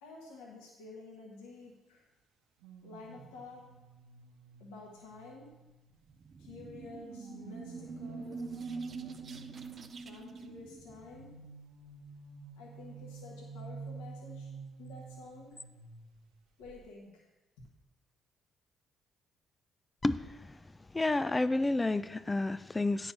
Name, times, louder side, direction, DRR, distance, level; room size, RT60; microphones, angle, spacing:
voice 1, 0.0-2.1 2.8-3.7 4.6-5.6 6.4-8.5 10.0-11.4 12.6-14.5 14.8-15.6 16.6-17.3 17.6-17.7, left 3 dB, 80° left, -2 dB, 1.4 m, -50 dB
sound 1, 2.6-6.2 6.8-10.1 11.1-16.3 16.6-16.9, right 4 dB, 80° right, 0.8 m, -50 dB
sound 2, 6.1-11.5, right 4 dB, 50° right, 0.6 m, -44 dB
voice 2, 20.9-23.1, left 2 dB, 25° left, 14 dB, 0.4 m, -29 dB
9.3 x 4.5 x 5.2 m, 1.0 s
hypercardioid pair, 50°, 0 cm